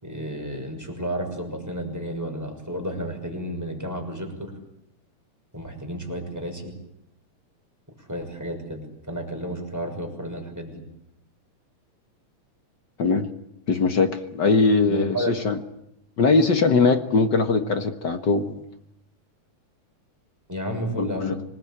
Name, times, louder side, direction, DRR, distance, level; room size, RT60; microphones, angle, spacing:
voice 1, 0.0-4.5 5.5-6.7 8.0-8.8 9.1-10.8 14.9-15.4 20.5-21.3, equal, 5° right, 2 dB, 6.1 m, -32 dB
voice 2, 13.7-15.6 16.2-18.6 21.0-21.4, left 4 dB, 45° left, 8 dB, 1.6 m, -21 dB
26.0 x 20.5 x 8.8 m, 0.81 s
omnidirectional pair, 3.4 m